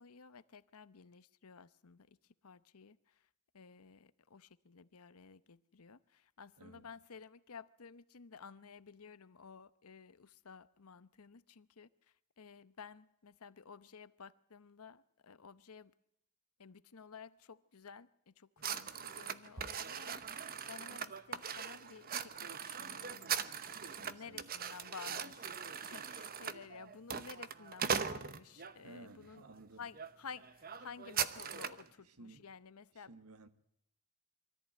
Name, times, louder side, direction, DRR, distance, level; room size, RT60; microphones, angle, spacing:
voice 1, 0.0-2.2 2.4-3.2 3.5-11.9 12.4-15.9 16.6-20.2 20.7-23.5 24.0-29.4 29.8-33.1, left 5 dB, 80° left, 0.8 m, -53 dB
voice 2, 6.6-6.9 23.8-24.5 28.8-29.8 32.0-32.5 32.9-33.5, right 2 dB, 90° right, 1.4 m, -56 dB
sound 1, 18.6-28.8 29.4-29.6 29.9-30.1 30.4-31.9, right 7 dB, 40° right, 0.9 m, -40 dB
23.0 x 14.0 x 9.2 m
head